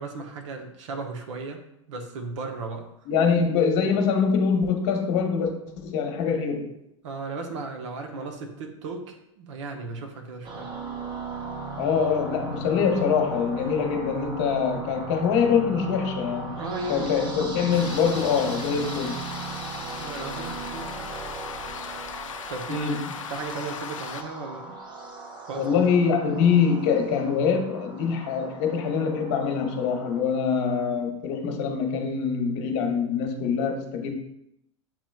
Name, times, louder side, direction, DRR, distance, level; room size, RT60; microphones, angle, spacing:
voice 1, 0.0-2.9 7.0-10.7 16.6-17.3 19.8-21.1 22.5-22.9 23.3-24.8 25.5-25.7, right 3 dB, 70° right, 4 dB, 0.9 m, -35 dB
voice 2, 3.1-5.5 5.8-6.7 11.8-16.6 16.9-19.2 22.7-23.0 25.6-34.1, left 6 dB, 60° left, 4 dB, 0.9 m, -24 dB
sound 1, 10.4-30.2, right 3 dB, 30° right, 0.9 m, -37 dB
sound 2, 17.7-24.2, left 7 dB, 90° left, 0.4 m, -38 dB
7.2 x 3.0 x 2.3 m, 0.81 s
hypercardioid pair, 100°, 16 cm